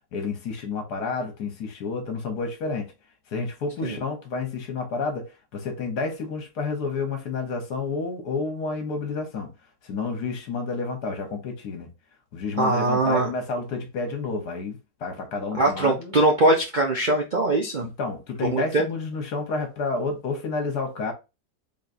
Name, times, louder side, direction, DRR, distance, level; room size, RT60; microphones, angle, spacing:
voice 1, 0.1-2.9 3.3-9.5 9.8-11.9 12.3-16.1 17.8-21.1, left 4 dB, 70° left, 1.6 m, -30 dB
voice 2, 12.6-13.3 15.5-17.9 18.5-18.8, right 2 dB, 60° right, 0.4 m, -21 dB
4.0 x 3.6 x 2.6 m
omnidirectional pair, 1.9 m